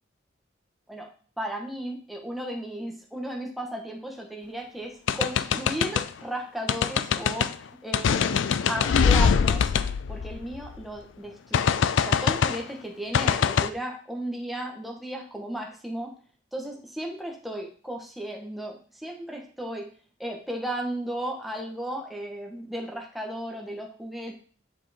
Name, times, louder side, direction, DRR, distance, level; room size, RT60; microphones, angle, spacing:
voice 1, 1.4-7.5 7.8-9.7 10.1-16.1 16.5-19.9 20.2-24.4, right 1 dB, ahead, 0 dB, 1.2 m, -35 dB
sound 1, 5.1-6.1 6.7-7.5 7.9-10.8 11.5-12.6 13.1-13.7, left 6 dB, 85° left, 0.4 m, -23 dB
7.9 x 4.4 x 4.2 m, 0.42 s
head